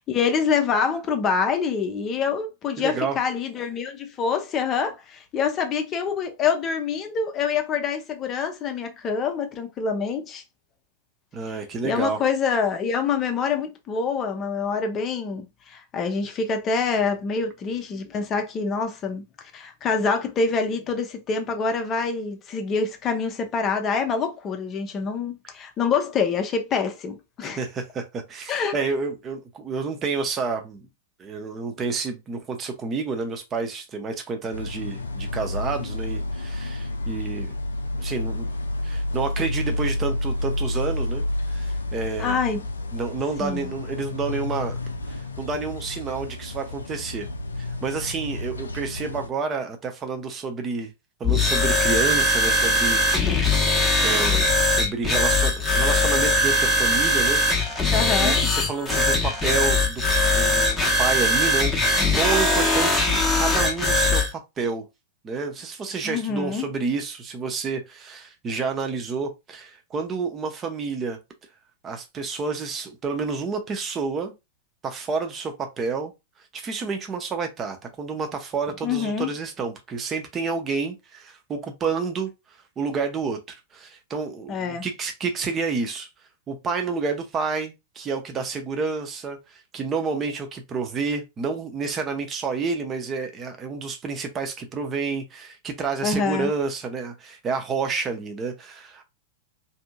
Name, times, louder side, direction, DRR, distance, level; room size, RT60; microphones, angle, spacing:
voice 1, 0.0-10.4 11.8-19.2 19.5-27.6 28.5-28.7 42.2-42.6 43.4-43.7 57.9-58.4 66.0-66.7 78.8-79.3 84.5-84.9 96.0-96.5, left 5 dB, 30° left, 0.6 m, -26 dB
voice 2, 2.8-3.2 11.3-12.2 27.4-30.8 31.2-37.6 38.0-38.5 38.8-42.4 42.9-44.8 45.1-47.3 47.6-50.9 51.2-53.0 53.5-53.8 54.0-57.9 58.2-60.0 60.3-61.7 62.2-64.8 65.2-71.2 71.8-74.3 74.8-76.1 76.5-82.3 82.8-86.1 86.5-99.0, right 4 dB, 25° right, 0.7 m, -29 dB
sound 1, 34.5-49.3, left 1 dB, 75° left, 0.4 m, -30 dB
sound 2, 51.2-64.3, left 1 dB, 10° left, 0.9 m, -21 dB
2.7 x 2.6 x 2.2 m
figure-of-eight pair, 95°, 0 cm